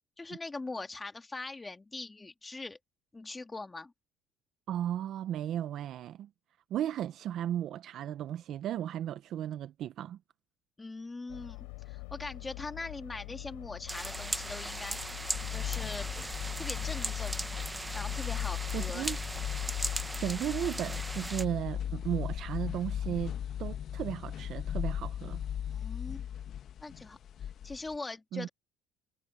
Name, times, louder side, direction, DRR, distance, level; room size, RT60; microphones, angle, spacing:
voice 1, 0.2-2.8 3.1-3.9 10.8-15.2 15.5-16.1 16.6-17.5 17.9-19.1 25.7-26.2 26.8-27.2 27.6-28.5, left 3 dB, 20° left, 2.3 m, -41 dB
voice 2, 4.7-6.3 6.7-10.2 18.7-19.2 20.2-23.3 23.6-25.4 28.3-28.5, right 11 dB, 60° right, 0.8 m, -35 dB
sound 1, 11.3-20.1, left 35 dB, 90° left, 6.7 m, -45 dB
sound 2, 13.9-21.4, right 2 dB, 15° right, 1.1 m, -38 dB
sound 3, 15.3-28.0, left 9 dB, 55° left, 1.3 m, -37 dB
supercardioid pair, 90°, 0 cm